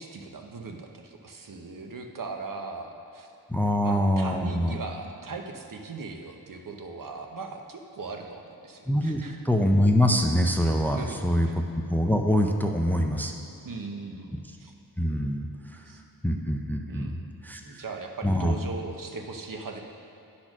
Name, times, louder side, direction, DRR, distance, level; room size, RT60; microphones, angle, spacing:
voice 1, 0.0-3.3 3.8-9.4 10.9-11.5 13.6-14.7 15.8-16.0 16.9-17.2 17.6-19.8, right 3 dB, 55° right, 3 dB, 0.8 m, -39 dB
voice 2, 3.5-4.7 8.9-11.5 11.9-13.4 15.0-15.5 16.2-17.1 17.4-17.8 18.2-18.6, equal, 5° left, 3 dB, 0.5 m, -24 dB
10.5 x 4.3 x 6.0 m, 2.9 s
wide cardioid pair, 115°, 39 cm